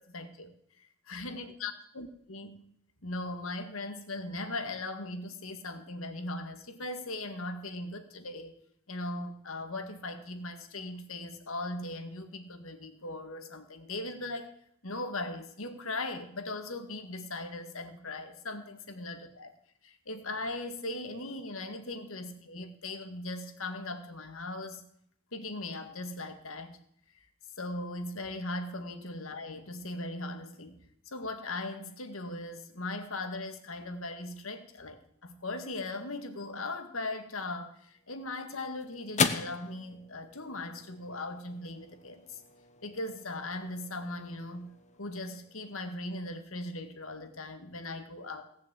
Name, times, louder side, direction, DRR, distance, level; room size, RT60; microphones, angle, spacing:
voice 1, 0.1-0.5 0.8-2.6 3.0-8.5 8.9-14.5 14.8-19.5 19.8-24.8 25.3-26.8 27.6-30.8 31.1-42.4 42.8-44.7 45.0-48.4, left 2 dB, 75° left, 7 dB, 1.9 m, -39 dB
sound 1, 37.9-46.4, left 5 dB, 35° left, 0.9 m, -38 dB
17.5 x 7.0 x 8.2 m, 0.71 s
head